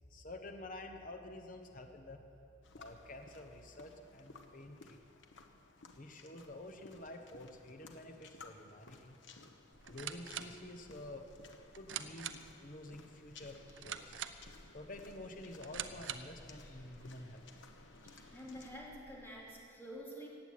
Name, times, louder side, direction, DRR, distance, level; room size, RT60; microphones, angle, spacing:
voice 1, 0.1-2.2 2.7-5.2 5.9-9.2 9.9-11.2 11.7-14.2 14.7-17.5, left 1 dB, 45° left, 4 dB, 1.0 m, -49 dB
sound 1, 2.6-18.8, left 3 dB, 70° left, 1.1 m, -58 dB
sound 2, 9.7-16.5, right 9 dB, 75° right, 0.7 m, -46 dB
sound 3, 13.3-19.5, equal, 15° right, 2.3 m, -62 dB
voice 2, 18.3-20.3, equal, 10° left, -4 dB, 2.8 m, -48 dB
16.0 x 8.0 x 9.4 m, 2.7 s
head